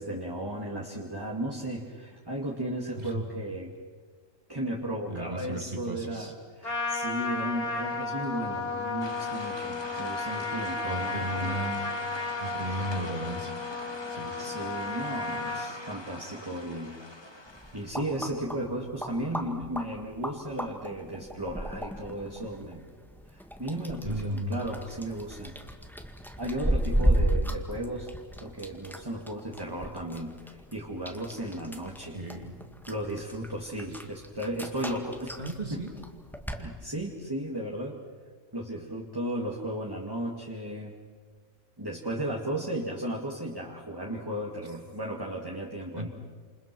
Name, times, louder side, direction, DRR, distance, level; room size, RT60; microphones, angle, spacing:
voice 1, 0.0-3.7 4.5-11.6 14.4-16.9 17.7-22.8 23.3-25.6 26.4-28.1 28.4-32.2 32.9-35.4 35.7-35.8 36.6-38.0 38.5-40.9 41.8-46.1, right 1 dB, 15° right, -1 dB, 2.2 m, -35 dB
voice 2, 5.1-6.3 10.8-11.9 12.4-13.5 14.1-14.4 24.1-24.6 32.1-32.6 33.9-34.0 35.4-35.9 46.0-46.1, right 1 dB, 35° right, 2 dB, 3.2 m, -35 dB
Trumpet, 6.6-15.7, left 3 dB, 50° left, 4.2 m, -33 dB
sound 1, 9.0-17.9, left 1 dB, 20° left, 1.8 m, -43 dB
sound 2, 17.5-36.6, equal, ahead, 1.9 m, -34 dB
29.5 x 28.5 x 6.1 m, 1.5 s
omnidirectional pair, 1.3 m